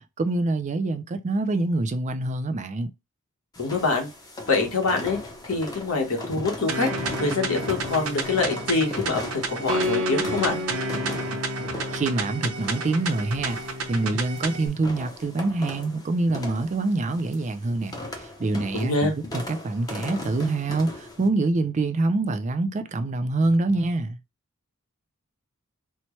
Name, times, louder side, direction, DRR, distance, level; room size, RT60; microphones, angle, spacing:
voice 1, 0.0-2.9 11.2-11.3 11.9-13.6 13.9-18.0 18.4-24.2, right 2 dB, 35° right, 0.4 m, -25 dB
sound 1, 3.5-21.3, left 1 dB, 20° left, 0.7 m, -38 dB
voice 2, 3.6-4.1 4.5-5.2 5.5-6.9 7.2-10.6 18.7-19.1, left 3 dB, 75° left, 1.1 m, -25 dB
sound 2, 6.7-14.7, right 1 dB, 80° right, 0.7 m, -30 dB
4.3 x 2.1 x 3.0 m
head